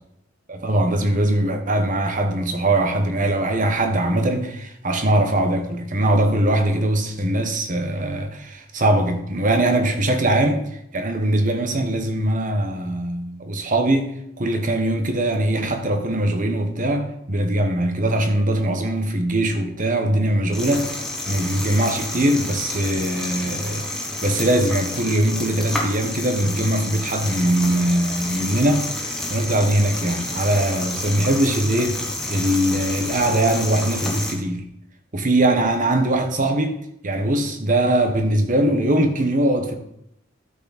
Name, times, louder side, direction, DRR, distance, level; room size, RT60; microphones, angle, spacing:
voice 1, 0.5-20.9 21.3-28.9 29.3-32.0 32.3-34.6 35.1-36.8 37.0-39.8, right 1 dB, 45° right, 1.2 m, -21 dB
sound 1, 20.5-34.3, left 1 dB, 5° left, 1.6 m, -30 dB
12.5 x 5.9 x 4.1 m
head